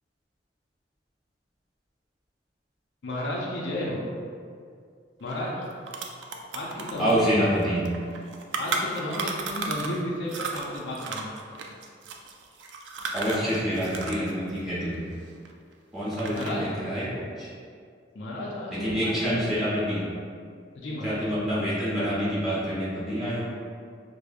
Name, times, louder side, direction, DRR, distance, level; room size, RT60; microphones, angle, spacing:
voice 1, 3.0-4.0 5.2-5.5 6.5-7.4 8.6-11.3 16.3-16.6 18.1-19.4 20.7-21.2, left 1 dB, 85° left, -4 dB, 0.5 m, -33 dB
sound 1, 5.3-5.4 5.6-10.0 10.3-14.3 14.6-15.7 16.1-16.7, right 4 dB, 85° right, 0.4 m, -34 dB
voice 2, 7.0-7.9 13.1-15.0 15.9-17.5 18.7-20.0 21.0-23.4, equal, ahead, -12 dB, 1.2 m, -27 dB
4.7 x 2.0 x 2.5 m, 2.2 s
head